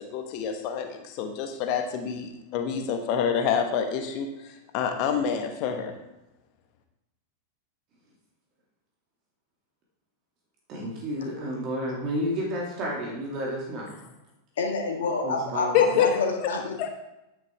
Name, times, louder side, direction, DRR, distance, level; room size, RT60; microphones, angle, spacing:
voice 1, 0.0-4.3 4.7-5.9 15.7-16.1 16.4-16.5 16.8-16.9, left 8 dB, 45° left, 5 dB, 1.3 m, -27 dB
voice 2, 10.7-13.9 15.2-16.0, equal, 40° right, -2 dB, 2.5 m, -31 dB
voice 3, 14.6-16.7, left 4 dB, 60° left, 1 dB, 1.7 m, -28 dB
10.5 x 9.1 x 3.6 m, 0.91 s
figure-of-eight pair, 90°, 0 cm